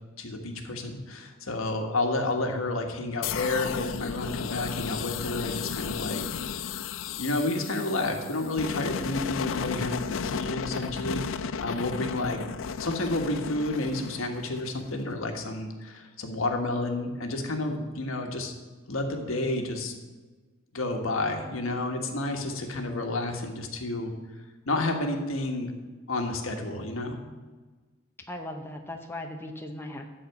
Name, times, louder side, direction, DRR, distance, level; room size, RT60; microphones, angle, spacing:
voice 1, 0.2-6.4 7.2-11.3 11.6-12.4 12.8-18.5 18.9-19.9 20.7-24.1 24.7-25.7 26.1-27.2, left 2 dB, 85° left, 3 dB, 1.4 m, -30 dB
sound 1, 3.2-15.0, left 6 dB, 70° left, 0.4 m, -34 dB
voice 2, 28.3-30.1, left 1 dB, 10° left, 3 dB, 0.8 m, -38 dB
12.5 x 4.3 x 8.1 m, 1.3 s
head